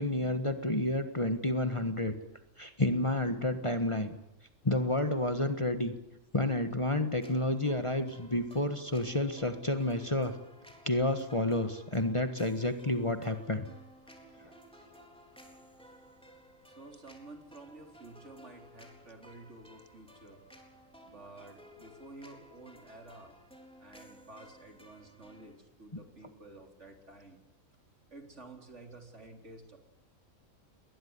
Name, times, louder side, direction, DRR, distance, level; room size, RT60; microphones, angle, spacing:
voice 1, 0.0-2.1 2.6-4.2 4.6-5.9 6.3-10.3 10.8-13.7 14.4-14.5, left 1 dB, 25° left, 8 dB, 1.5 m, -30 dB
sound 1, 7.2-25.6, equal, 5° left, 4.0 m, -56 dB
voice 2, 16.7-20.4 21.0-23.4 23.8-27.4 28.1-29.8, right 2 dB, 55° right, 4 dB, 4.1 m, -51 dB
22.5 x 20.0 x 9.6 m, 0.83 s
omnidirectional pair, 1.4 m